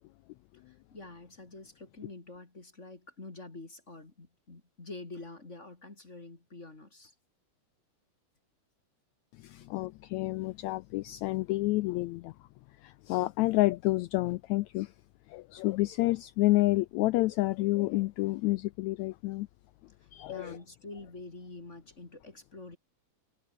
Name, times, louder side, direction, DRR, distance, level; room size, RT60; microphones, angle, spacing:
voice 1, 0.7-7.1 20.0-22.8, left 2 dB, 25° left, 2.7 m, -47 dB
voice 2, 9.4-12.3 12.8-14.9 15.3-19.5 20.1-20.6, left 19 dB, 80° left, 1.6 m, -29 dB
omnidirectional pair, 3.7 m